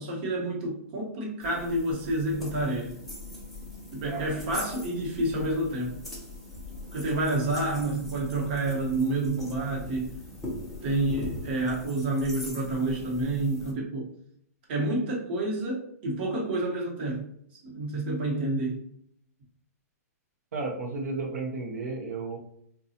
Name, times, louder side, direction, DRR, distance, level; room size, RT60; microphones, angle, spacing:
voice 1, 0.0-3.0 3.9-6.0 6.9-10.1 10.8-14.1 14.7-17.3 17.6-18.8, right 2 dB, 40° right, -2 dB, 1.0 m, -29 dB
sound 1, 1.4-13.7, left 2 dB, ahead, 0.5 m, -41 dB
voice 2, 20.5-22.4, right 3 dB, 70° right, -1 dB, 0.7 m, -33 dB
3.9 x 2.3 x 2.7 m, 0.67 s
hypercardioid pair, 165°, 9 cm